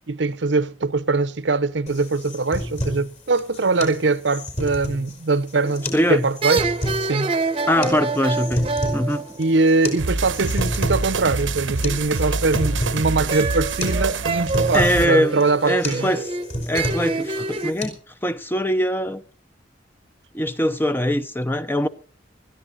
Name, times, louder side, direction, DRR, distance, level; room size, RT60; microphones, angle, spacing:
voice 1, 0.1-6.6 7.0-7.3 9.4-16.1, right 3 dB, 70° right, 0.8 m, -22 dB
sound 1, 1.9-17.9, left 1 dB, 40° left, 4.3 m, -31 dB
sound 2, 5.6-6.0 6.4-10.1 13.3-17.7, right 3 dB, 30° right, 0.9 m, -27 dB
voice 2, 5.9-6.2 7.7-9.3 14.7-16.3 16.7-19.2 20.3-21.9, equal, 10° left, 0.7 m, -22 dB
sound 3, 10.0-15.1, right 3 dB, 90° right, 1.0 m, -26 dB
20.0 x 13.5 x 4.1 m
head